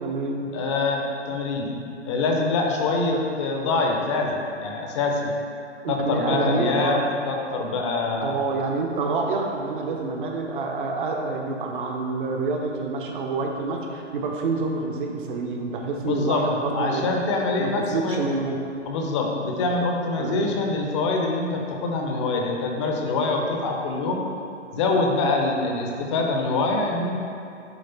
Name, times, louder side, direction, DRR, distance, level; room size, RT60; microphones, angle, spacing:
voice 1, 0.0-0.5 3.1-3.2 5.8-7.0 8.2-17.3 17.6-18.6 20.2-20.5 25.6-25.9, right 3 dB, 45° right, 1 dB, 0.7 m, -27 dB
voice 2, 0.5-5.3 5.9-8.4 16.0-16.4 16.7-18.2 18.9-24.2 24.7-27.2, left 3 dB, 25° left, 1 dB, 0.6 m, -25 dB
7.9 x 3.1 x 4.3 m, 2.6 s
figure-of-eight pair, 130°, 37 cm